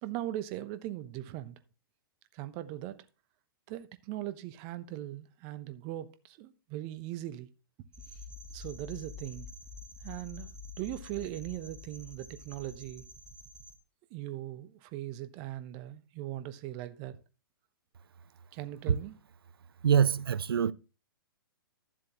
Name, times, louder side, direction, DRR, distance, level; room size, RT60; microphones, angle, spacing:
voice 1, 0.0-1.6 2.3-3.1 3.7-7.5 8.5-9.5 10.0-10.5 10.8-13.0 14.1-17.2 18.5-19.2, right 14 dB, 35° right, 0.9 m, -39 dB
sound 1, 7.9-13.7, left 3 dB, 5° right, 1.1 m, -47 dB
voice 2, 19.8-20.7, right 8 dB, 75° right, 0.5 m, -24 dB
12.5 x 7.5 x 3.0 m
figure-of-eight pair, 115°, 12 cm